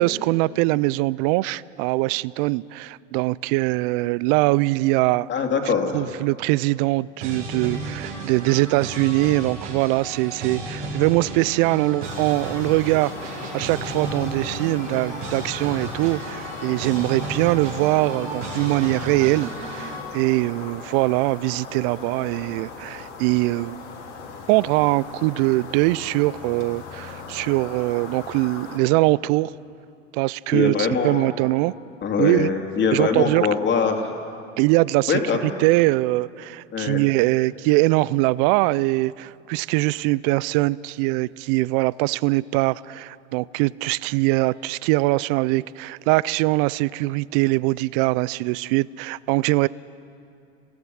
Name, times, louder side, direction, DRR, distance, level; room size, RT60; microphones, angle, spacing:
voice 1, 0.0-5.3 5.9-23.8 24.5-29.5 30.1-31.7 32.2-32.5 32.9-33.5 34.6-35.2 35.6-49.7, right 20 dB, 50° right, 22 dB, 0.5 m, -22 dB
voice 2, 5.3-6.0 30.5-31.3 32.0-34.1 35.1-35.6 36.7-37.0, left 5 dB, 30° left, 3 dB, 2.8 m, -23 dB
sound 1, 7.2-20.0, right 2 dB, 75° right, 6.4 m, -33 dB
sound 2, 12.0-28.8, left 5 dB, 80° left, 3.5 m, -38 dB
27.0 x 16.5 x 6.4 m, 2.5 s
hypercardioid pair, 90°, 36 cm